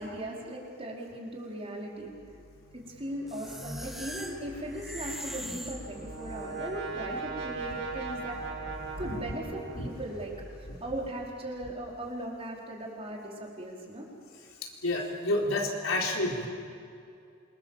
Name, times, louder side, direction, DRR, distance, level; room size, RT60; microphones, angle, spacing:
voice 1, 0.0-2.2 2.7-8.4 9.0-10.3 10.8-14.1, right 1 dB, 30° right, -2 dB, 5.0 m, -38 dB
sound 1, 1.9-12.1, equal, 20° left, 3.8 m, -49 dB
sound 2, 3.3-6.5, equal, ahead, 1.7 m, -41 dB
Brass instrument, 5.4-10.2, right 4 dB, 75° right, 6.2 m, -39 dB
voice 2, 14.8-16.5, left 2 dB, 85° left, 0 dB, 4.3 m, -29 dB
27.5 x 25.5 x 7.6 m, 2.5 s
head